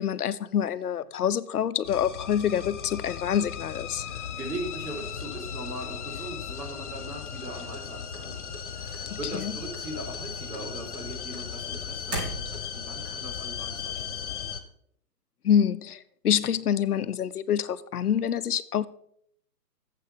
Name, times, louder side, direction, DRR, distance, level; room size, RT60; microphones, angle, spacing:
voice 1, 0.0-4.1 9.1-9.5 15.4-18.9, left 9 dB, 65° left, 14 dB, 0.7 m, -26 dB
sound 1, 1.8-14.6, left 7 dB, 45° left, 1.2 m, -37 dB
voice 2, 4.0-14.5, right 1 dB, 75° right, 1 dB, 4.4 m, -40 dB
sound 2, 7.7-9.0 9.3-9.8 10.1-12.9, right 1 dB, 20° right, 1.0 m, -37 dB
8.7 x 7.7 x 5.8 m, 0.67 s
hypercardioid pair, 165°, 49 cm